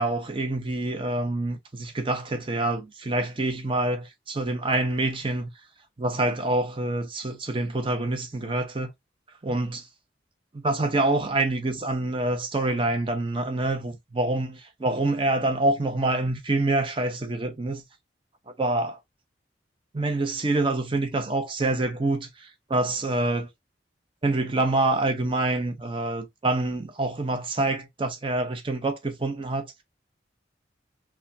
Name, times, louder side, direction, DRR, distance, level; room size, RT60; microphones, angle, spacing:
voice 1, 0.0-5.5 6.0-8.9 9.4-9.9 10.5-17.8 18.6-19.0 19.9-23.5 24.2-29.8, right 2 dB, 30° right, 0.7 m, -26 dB
3.5 x 2.3 x 2.6 m
head